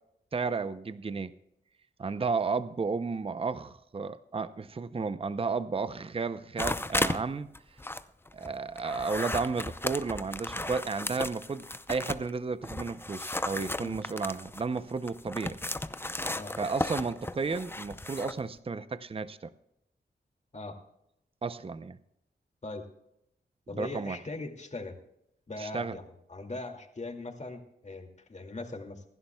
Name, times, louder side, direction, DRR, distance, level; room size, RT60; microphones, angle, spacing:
voice 1, 0.3-1.3 2.0-7.5 8.3-15.6 16.6-19.5 21.4-22.0 23.7-24.2 25.6-26.0, right 4 dB, 30° right, 13 dB, 0.6 m, -33 dB
sound 1, 6.6-7.2 7.6-12.3 12.6-18.4, left 2 dB, 10° left, 0.6 m, -35 dB
voice 2, 23.7-24.9 25.5-26.0 26.3-29.0, left 2 dB, 40° left, 3 dB, 2.3 m, -40 dB
26.5 x 11.5 x 2.3 m, 0.81 s
wide cardioid pair, 75°, 18 cm